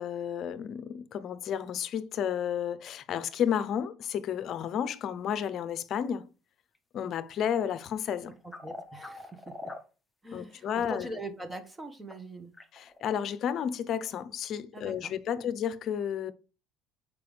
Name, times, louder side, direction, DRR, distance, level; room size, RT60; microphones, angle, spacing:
voice 1, 0.0-6.3 6.9-8.3 10.3-11.1 12.7-16.3, left 8 dB, 55° left, 0.7 m, -32 dB
sound 1, 6.7-6.8 8.3-9.8 10.3-10.7 11.1-11.3 12.1-12.2 12.5-13.0, left 2 dB, 10° left, 1.1 m, -43 dB
voice 2, 8.6-9.7 10.2-12.5 14.7-15.5, right 1 dB, 15° right, 1.2 m, -42 dB
6.8 x 5.0 x 3.4 m
supercardioid pair, 100°, 0 cm